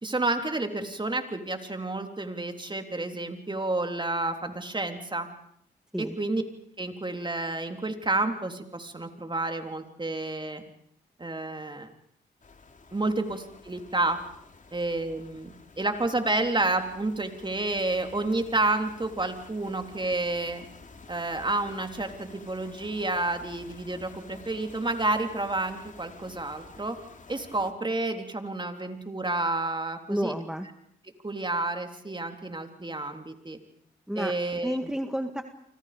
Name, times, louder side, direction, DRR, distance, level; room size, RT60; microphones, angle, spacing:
voice 1, 0.0-5.3 6.0-6.4 6.8-10.6 11.2-11.9 12.9-14.2 14.7-20.6 21.1-27.0 27.3-30.3 31.2-33.6 34.2-34.9, right 2 dB, 25° right, 5 dB, 3.7 m, -30 dB
sound 1, 12.4-27.7, left 4 dB, 45° left, 3.2 m, -51 dB
voice 2, 30.1-30.7 34.1-34.3 34.6-35.4, equal, 5° right, 6 dB, 1.9 m, -30 dB
30.0 x 25.0 x 5.3 m, 0.67 s
supercardioid pair, 55°, 19 cm